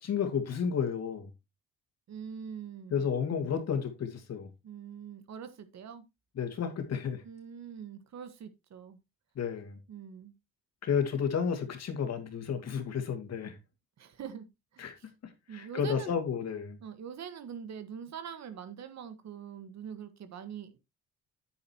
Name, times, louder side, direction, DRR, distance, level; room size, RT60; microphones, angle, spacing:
voice 1, 0.0-1.3 2.9-4.5 6.4-7.2 9.4-9.8 10.8-13.6 14.8-14.9 15.2-16.8, left 7 dB, 55° left, 2.5 m, -32 dB
voice 2, 2.1-3.1 4.6-6.0 7.2-9.0 9.9-10.3 14.0-14.5 14.7-15.1 15.5-16.2 16.8-20.8, right 7 dB, 60° right, 1.6 m, -44 dB
9.1 x 8.7 x 3.0 m
cardioid pair, 90°, 30 cm